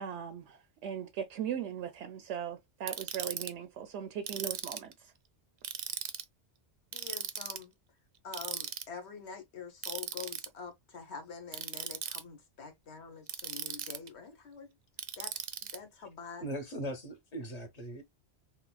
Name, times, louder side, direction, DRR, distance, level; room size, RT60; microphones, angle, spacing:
voice 1, 0.0-5.1, right 8 dB, 90° right, 0.9 m, -39 dB
Ratchet pawl, 2.9-3.5 4.3-4.9 5.6-6.2 6.9-7.6 8.3-8.8 9.8-10.5 11.5-12.2 13.3-14.1 15.0-15.8, right 8 dB, 55° right, 0.5 m, -38 dB
voice 2, 6.9-7.7 8.2-14.7 15.2-15.3 15.7-16.4, left 5 dB, 70° left, 1.3 m, -46 dB
voice 3, 16.4-18.0, equal, 40° left, 1.0 m, -39 dB
4.0 x 2.8 x 2.2 m
omnidirectional pair, 1.1 m